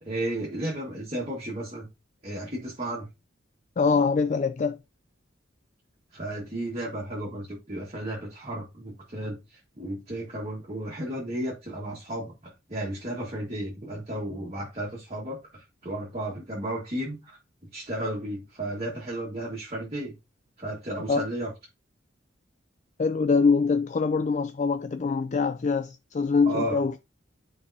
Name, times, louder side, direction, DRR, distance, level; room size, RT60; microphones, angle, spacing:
voice 1, 0.0-1.9 2.2-3.1 6.1-17.4 17.7-20.1 20.6-21.5 26.4-26.8, right 1 dB, 35° right, 1.7 m, -33 dB
voice 2, 3.8-4.8 21.1-21.2 23.0-26.9, left 4 dB, 40° left, 0.4 m, -24 dB
10.0 x 4.7 x 2.7 m
head